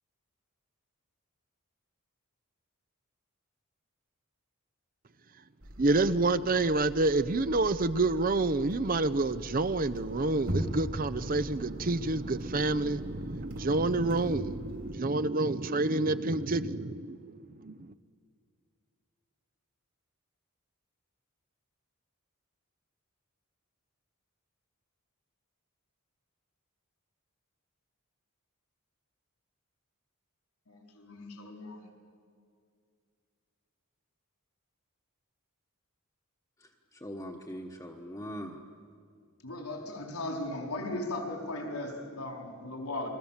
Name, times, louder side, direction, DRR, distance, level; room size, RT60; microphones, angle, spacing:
sound 1, 5.6-15.0, equal, 65° right, 4.3 m, -41 dB
voice 1, 5.8-17.9, right 2 dB, 40° right, 0.7 m, -28 dB
voice 2, 30.7-31.8 39.4-43.1, left 2 dB, 80° left, 4.4 m, -37 dB
voice 3, 36.6-38.6, equal, 15° left, 1.3 m, -42 dB
29.5 x 22.5 x 7.3 m
head